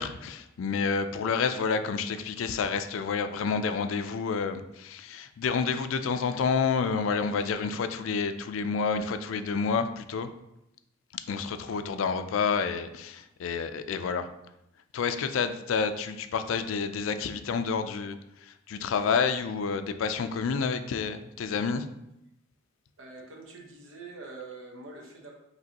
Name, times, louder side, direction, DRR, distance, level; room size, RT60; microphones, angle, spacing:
voice 1, 0.0-10.3 11.3-14.3 14.9-21.9, left 5 dB, 80° left, 10 dB, 0.4 m, -29 dB
voice 2, 23.0-25.3, right 3 dB, 80° right, 0 dB, 1.0 m, -44 dB
5.1 x 3.2 x 2.8 m, 0.87 s
head